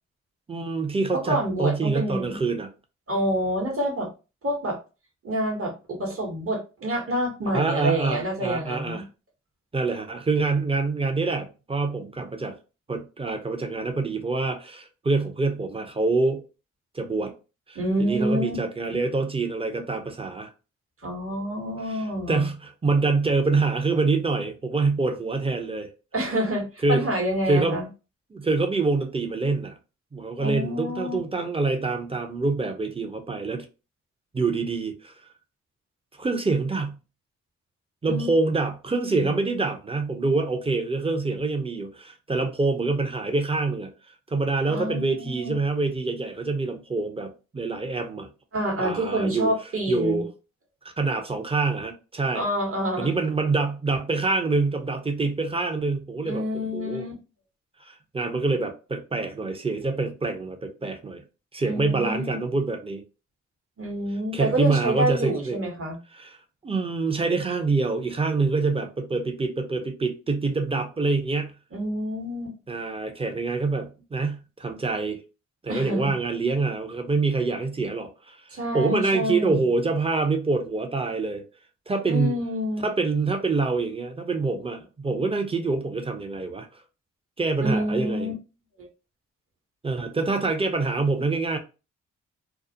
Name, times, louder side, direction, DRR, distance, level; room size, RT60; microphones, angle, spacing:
voice 1, 0.5-2.7 7.5-9.0 9.7-12.6 12.9-16.4 16.9-17.3 17.7-20.5 21.9-25.9 26.8-27.1 27.5-27.8 28.3-29.7 30.1-33.7 34.3-35.1 36.2-37.0 38.0-43.9 44.3-48.3 48.8-49.5 49.9-50.3 51.0-52.5 53.0-56.4 56.7-57.1 57.9-61.2 61.5-63.0 64.3-65.6 66.1-66.3 66.6-71.5 72.7-75.2 75.6-78.4 78.7-81.4 81.9-82.4 82.8-86.7 87.4-88.3 89.8-91.6, right 3 dB, 15° right, 0.7 m, -26 dB
voice 2, 1.1-2.4 3.1-4.1 4.4-4.8 5.2-9.0 17.7-18.6 21.0-22.5 26.1-27.9 30.4-31.2 38.1-38.3 39.2-39.3 44.7-45.5 48.5-50.2 52.3-53.2 56.2-57.1 61.6-62.4 63.8-66.0 71.7-72.5 75.7-76.1 78.5-79.6 82.1-82.8 87.6-88.3 88.8-88.9, equal, 45° right, 1.2 m, -27 dB
2.3 x 2.0 x 2.7 m
supercardioid pair, 40°, 32 cm